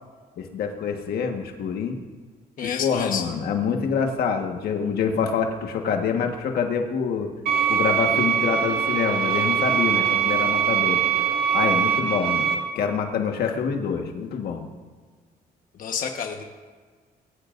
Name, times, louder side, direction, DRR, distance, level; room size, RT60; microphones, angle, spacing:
voice 1, 0.4-2.0 2.6-7.3 7.7-11.0 11.5-14.6, left 6 dB, 75° left, 4 dB, 1.5 m, -26 dB
voice 2, 2.6-3.2 15.7-16.4, left 7 dB, 55° left, 2 dB, 1.3 m, -29 dB
sound 1, 7.5-12.5, right 8 dB, 65° right, 2.0 m, -22 dB
21.0 x 16.0 x 2.6 m, 1.5 s
cardioid pair, 135°, 16 cm